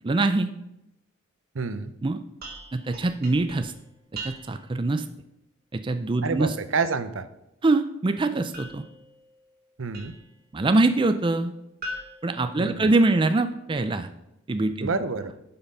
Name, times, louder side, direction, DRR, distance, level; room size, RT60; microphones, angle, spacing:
voice 1, 0.0-0.5 2.0-2.2 2.7-3.7 4.2-5.1 5.7-6.5 7.6-8.8 10.5-11.5 12.2-14.1 14.5-14.9, right 2 dB, 25° right, 8 dB, 0.4 m, -23 dB
voice 2, 1.5-1.9 6.2-7.3 9.8-10.1 12.6-12.9 14.8-15.3, right 4 dB, 70° right, 12 dB, 0.7 m, -28 dB
sound 1, 2.4-4.8 8.5-10.4 11.8-13.3, right 1 dB, 50° right, 2.2 m, -42 dB
10.5 x 5.8 x 5.5 m, 0.86 s
head